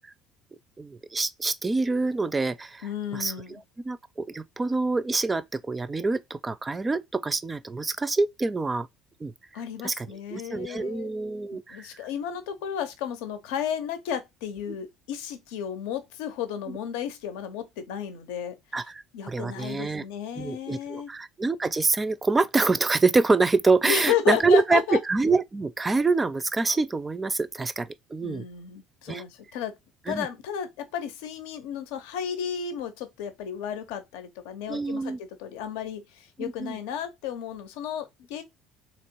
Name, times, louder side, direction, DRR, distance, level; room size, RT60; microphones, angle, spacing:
voice 1, 0.8-3.6 3.8-8.9 9.2-9.3 9.8-11.9 16.7-16.8 18.7-20.0 20.4-28.5 29.1-29.2 30.1-30.3 34.7-35.2 36.4-36.8, right 3 dB, 20° right, 0.4 m, -26 dB
voice 2, 2.8-3.6 9.5-11.1 11.5-18.6 19.1-21.1 23.8-25.0 28.2-29.7 30.1-38.4, left 9 dB, 85° left, 0.7 m, -33 dB
3.0 x 3.0 x 4.4 m
supercardioid pair, 80°, 0 cm